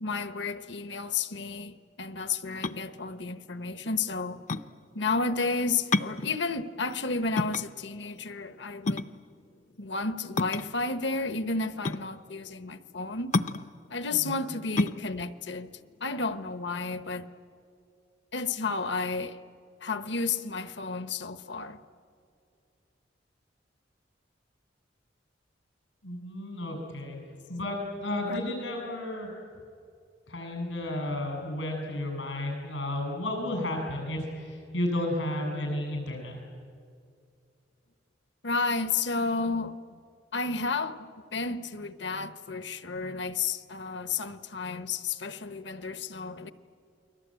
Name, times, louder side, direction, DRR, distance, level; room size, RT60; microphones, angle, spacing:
voice 1, 0.0-4.4 4.9-9.0 9.8-13.3 13.9-15.7 16.0-17.3 18.3-19.4 19.8-21.8 28.3-28.4 38.4-39.8 40.3-46.5, left 4 dB, 65° left, 1.0 m, -32 dB
sound 1, 2.4-16.8, left 3 dB, 40° left, 0.6 m, -33 dB
voice 2, 26.0-27.2 27.5-29.3 30.3-36.4, left 1 dB, 90° left, 7.7 m, -32 dB
29.5 x 22.0 x 9.0 m
head